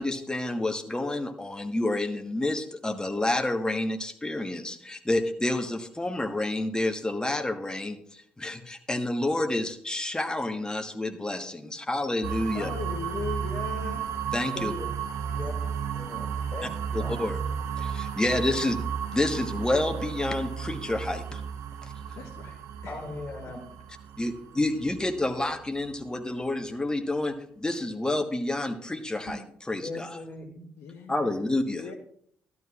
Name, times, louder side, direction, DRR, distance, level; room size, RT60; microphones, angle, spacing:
voice 1, 0.0-12.7 14.3-14.7 16.6-17.4 17.8-18.8 19.1-21.4 21.8-21.9 24.2-29.4 29.7-30.2 31.1-31.8, left 2 dB, 15° left, 6 dB, 1.3 m, -29 dB
sound 1, 12.2-26.0, right 7 dB, 65° right, 0.7 m, -34 dB
voice 2, 12.5-14.1 22.1-23.0 23.4-23.5 30.8-31.4 31.8-31.9, left 5 dB, 65° left, 3 dB, 1.0 m, -38 dB
voice 3, 14.5-14.9 15.3-15.5 15.9-17.1 22.9-23.6 29.2-29.3 29.8-30.7, left 2 dB, 35° left, 2 dB, 2.2 m, -39 dB
12.0 x 12.0 x 2.4 m, 0.65 s
hypercardioid pair, 45°, 5 cm